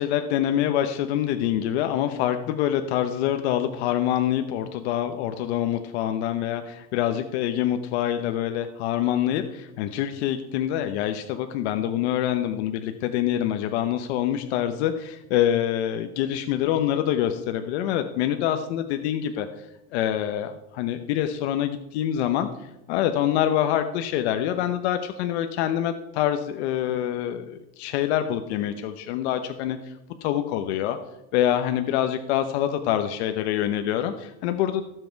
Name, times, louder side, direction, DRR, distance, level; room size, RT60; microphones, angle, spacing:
voice 1, 0.0-29.9 30.2-31.0 31.3-34.8, left 11 dB, 70° left, 7 dB, 1.0 m, -26 dB
17.5 x 7.9 x 4.6 m, 0.93 s
supercardioid pair, 165°, 34 cm